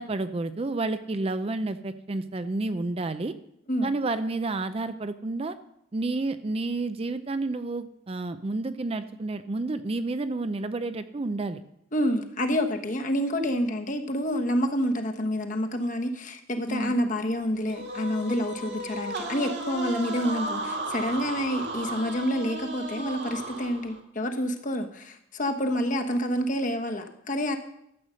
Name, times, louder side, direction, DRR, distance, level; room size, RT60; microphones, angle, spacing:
voice 1, 0.0-3.3 3.8-5.6 5.9-11.6 16.7-16.9, right 2 dB, 30° right, 11 dB, 0.4 m, -30 dB
voice 2, 11.9-27.6, equal, 40° left, 5 dB, 1.2 m, -28 dB
sound 1, 17.7-24.0, right 1 dB, 55° right, 1.9 m, -35 dB
13.0 x 8.0 x 6.3 m, 0.77 s
head